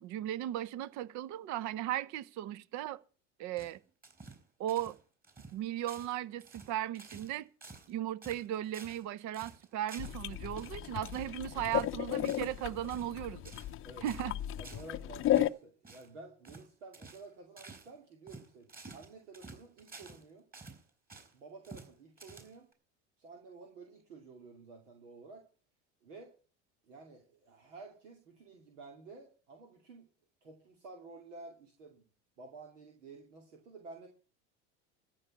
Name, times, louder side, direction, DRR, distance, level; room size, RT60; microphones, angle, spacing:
voice 1, 0.0-3.0 3.4-3.8 4.6-5.0 5.5-7.5 7.9-13.5 14.0-14.3, right 12 dB, 55° right, 0.8 m, -37 dB
sound 1, 3.6-4.4 4.7-5.0 5.2-5.6 5.9-6.2 6.4-7.3 7.6-7.9 8.2-9.0 9.3-10.2 10.6-10.7 11.1-11.3 11.7-12.5 12.8-13.1 13.4-13.8 14.0-14.3 14.6-14.9 15.2-15.5 15.8-16.1 16.4-16.7 16.9-17.3 17.6-17.9 18.3-20.2 20.5-21.3 21.6-21.9 22.2-22.7, right 3 dB, 25° right, 4.2 m, -51 dB
sound 2, 10.0-15.5, left 12 dB, 35° left, 0.6 m, -34 dB
voice 2, 14.6-20.5 21.3-22.7 23.2-25.5 26.0-26.3 26.8-30.1 30.4-32.0 32.4-34.1, right 3 dB, 85° right, 2.5 m, -52 dB
14.0 x 5.5 x 9.5 m
hypercardioid pair, 85°, 35 cm